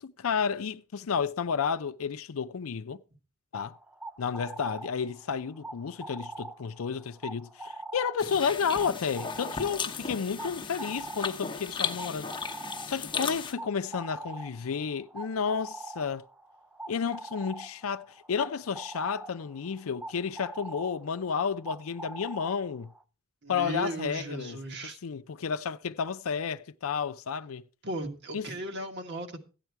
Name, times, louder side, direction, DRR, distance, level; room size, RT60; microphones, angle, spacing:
voice 1, 0.0-3.0 3.5-3.8 4.2-12.3 12.9-16.2 16.9-22.9 23.5-24.6 24.8-27.6 28.3-28.5, left 6 dB, 90° left, 0.5 m, -31 dB
sound 1, 3.7-23.0, right 2 dB, 5° right, 0.5 m, -44 dB
sound 2, 8.2-13.5, left 5 dB, 25° left, 0.9 m, -36 dB
voice 2, 23.4-25.0 27.8-29.4, right 2 dB, 55° right, 1.6 m, -36 dB
13.5 x 9.0 x 4.6 m
head